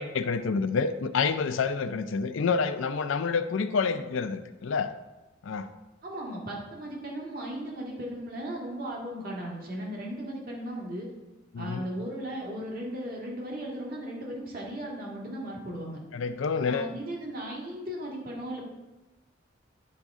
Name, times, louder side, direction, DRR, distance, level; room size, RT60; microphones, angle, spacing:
voice 1, 0.0-4.9 5.4-5.7 11.5-11.9 16.1-16.9, left 5 dB, 80° left, 9 dB, 0.4 m, -28 dB
voice 2, 6.0-11.1 11.6-16.0 16.6-18.6, right 1 dB, 50° right, -2 dB, 1.8 m, -36 dB
10.5 x 5.1 x 3.6 m, 1.1 s
head